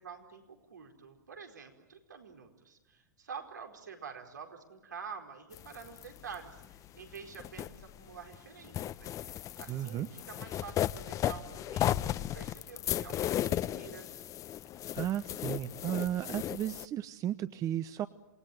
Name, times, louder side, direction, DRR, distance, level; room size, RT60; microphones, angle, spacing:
voice 1, 0.0-14.1, right 6 dB, 90° right, 3 dB, 4.7 m, -48 dB
sound 1, 5.5-8.3 8.6-16.8, left 12 dB, 35° left, 0.9 m, -35 dB
voice 2, 9.7-10.1 14.9-18.1, right 11 dB, 35° right, 13 dB, 1.0 m, -34 dB
27.5 x 19.5 x 9.3 m, 1.1 s
hypercardioid pair, 100°, 10 cm